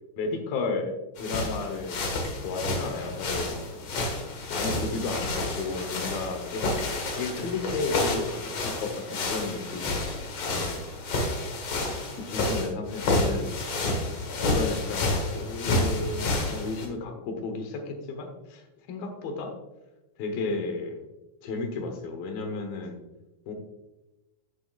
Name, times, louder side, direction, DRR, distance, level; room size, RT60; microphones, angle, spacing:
voice 1, 0.2-3.9 4.5-10.8 12.2-13.5 14.2-19.6 20.2-21.1 21.4-23.0 23.5-23.6, left 3 dB, 80° left, 5 dB, 2.9 m, -33 dB
sound 1, 1.2-16.9, left 2 dB, 55° left, 2.0 m, -30 dB
11.5 x 7.3 x 2.4 m, 1.0 s
omnidirectional pair, 4.2 m